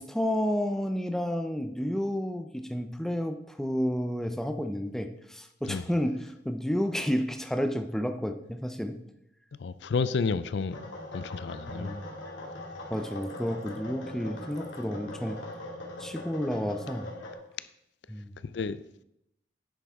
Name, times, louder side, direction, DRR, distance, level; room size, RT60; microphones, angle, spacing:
voice 1, 0.0-9.0 11.7-12.1 12.9-15.4 16.0-17.1 18.1-18.3, equal, ahead, 0.5 m, -31 dB
voice 2, 9.6-10.9 11.1-12.0 18.5-18.8, left 4 dB, 75° left, 0.4 m, -30 dB
sound 1, 10.7-17.3, left 1 dB, 90° left, 2.3 m, -41 dB
10.0 x 7.9 x 3.6 m
head